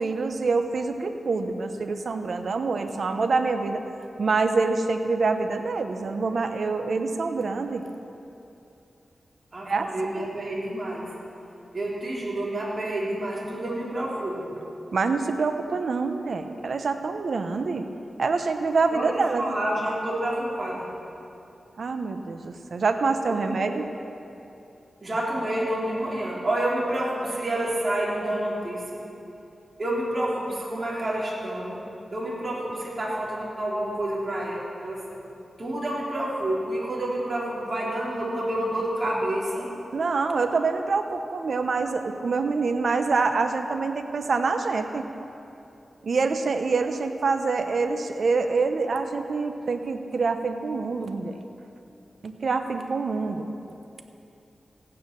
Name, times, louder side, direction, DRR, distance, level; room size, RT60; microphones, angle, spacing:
voice 1, 0.0-3.8 4.2-7.8 9.6-9.9 10.1-10.3 14.9-17.9 18.2-19.4 21.8-23.9 39.9-45.1 46.0-51.4 52.2-53.5, right 4 dB, 70° right, 6 dB, 0.9 m, -26 dB
voice 2, 9.5-11.1 11.7-14.6 18.9-20.9 23.5-23.7 25.0-29.0 29.8-31.8 32.1-35.0 35.6-39.7, right 1 dB, 40° right, -5 dB, 3.9 m, -29 dB
15.5 x 9.5 x 7.0 m, 2.8 s
wide cardioid pair, 80°, 0 cm